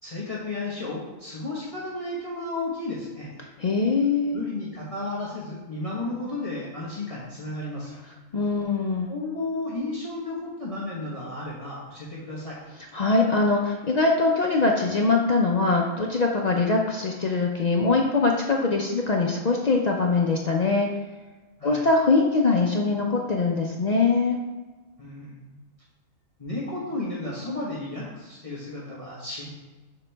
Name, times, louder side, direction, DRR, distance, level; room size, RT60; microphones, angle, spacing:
voice 1, 0.0-3.3 4.3-8.0 9.1-12.6 21.6-21.8 25.0-25.6 26.4-29.5, left 2 dB, 25° left, -6 dB, 1.1 m, -33 dB
voice 2, 3.6-4.4 8.3-9.1 12.9-20.9 21.6-24.4, left 3 dB, 70° left, 0 dB, 0.4 m, -22 dB
7.0 x 4.1 x 3.3 m, 1.2 s
omnidirectional pair, 1.4 m